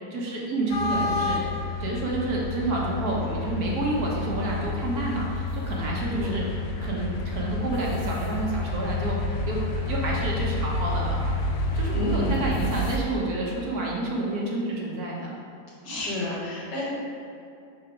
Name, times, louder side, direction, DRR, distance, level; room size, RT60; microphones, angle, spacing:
voice 1, 0.1-1.4 1.8-11.2 11.7-15.3 15.9-16.1, right 2 dB, 65° right, -3 dB, 1.5 m, -29 dB
sound 1, 0.7-13.0, left 2 dB, 65° left, 0.7 m, -29 dB
voice 2, 11.9-12.4 15.8-17.0, left 2 dB, 85° left, -6 dB, 2.1 m, -30 dB
6.0 x 4.0 x 5.0 m, 2.5 s
omnidirectional pair, 1.8 m